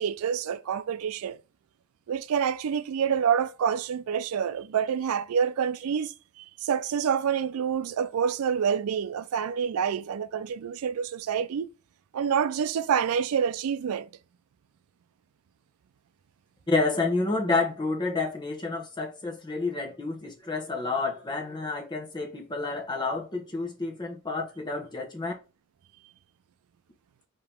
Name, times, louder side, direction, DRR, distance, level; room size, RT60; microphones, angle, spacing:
voice 1, 0.0-1.4 2.1-11.7 12.1-14.1, right 7 dB, 85° right, 0.4 m, -27 dB
voice 2, 16.7-25.3, left 3 dB, 20° left, 0.9 m, -29 dB
5.0 x 2.9 x 3.5 m
head